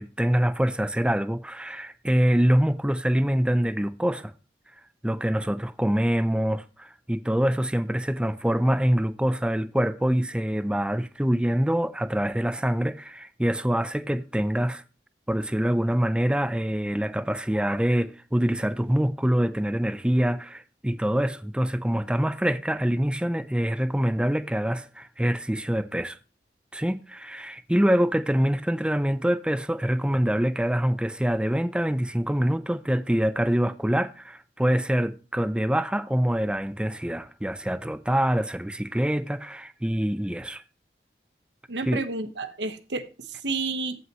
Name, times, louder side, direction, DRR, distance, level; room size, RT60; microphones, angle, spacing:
voice 1, 0.0-4.3 5.0-14.8 15.3-26.2 26.7-40.6 41.9-42.0, equal, 5° right, 0.4 m, -25 dB
voice 2, 41.7-44.0, right 3 dB, 85° right, 1.2 m, -31 dB
15.0 x 5.7 x 3.1 m
head